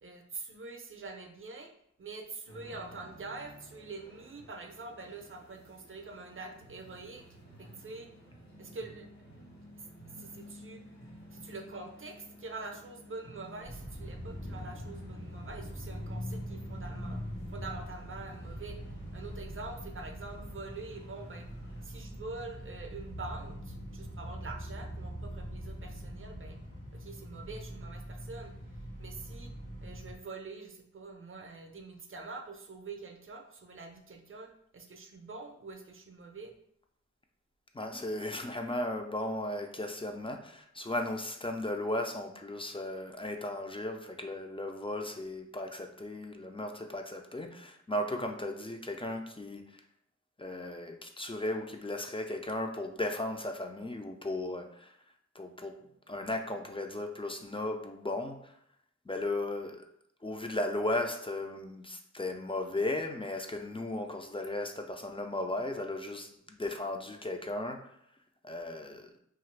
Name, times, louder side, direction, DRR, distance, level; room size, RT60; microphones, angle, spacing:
voice 1, 0.0-1.7 2.0-7.2 7.6-8.1 8.6-9.1 9.8-9.9 10.1-10.8 11.3-17.2 17.5-18.8 19.1-21.5 21.8-26.6 26.9-28.5 29.0-29.5 29.8-34.5 34.7-36.5, right 3 dB, 45° right, 4 dB, 0.5 m, -45 dB
sound 1, 2.5-21.8, equal, 65° left, 1.0 m, -54 dB
sound 2, 13.6-30.1, equal, 90° left, 0.9 m, -42 dB
voice 2, 37.7-49.8 50.4-55.0 55.3-55.8 56.1-58.5 59.1-59.9 60.2-67.9 68.4-69.1, left 1 dB, 20° left, 3 dB, 0.3 m, -36 dB
2.7 x 2.4 x 3.2 m, 0.70 s
wide cardioid pair, 65°, 30 cm